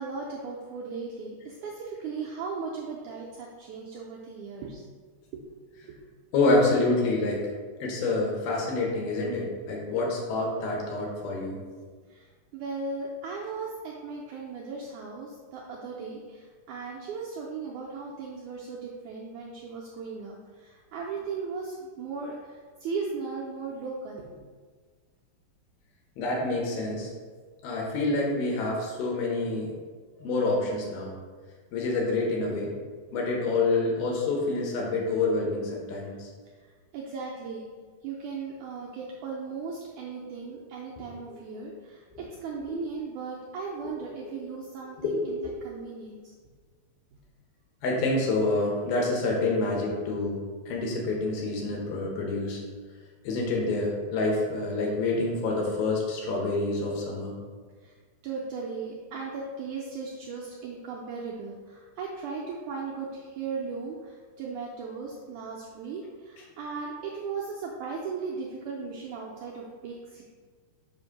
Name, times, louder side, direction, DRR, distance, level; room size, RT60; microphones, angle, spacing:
voice 1, 0.0-4.8 5.3-5.5 5.9-6.0 12.1-12.3 12.5-24.4 36.9-37.7 38.0-46.2 57.8-57.9 58.2-70.2, right 4 dB, 85° right, -3 dB, 1.7 m, -37 dB
voice 2, 6.3-7.5 7.8-11.6 26.2-27.1 27.6-29.7 30.2-31.1 31.7-32.7 33.1-36.3 41.0-41.1 41.6-41.7 42.1-42.2 44.2-44.4 45.0-45.5 47.8-50.4 50.7-52.6 53.2-57.3, left 2 dB, 90° left, -2 dB, 2.9 m, -27 dB
7.4 x 2.6 x 5.7 m, 1.5 s
omnidirectional pair, 4.1 m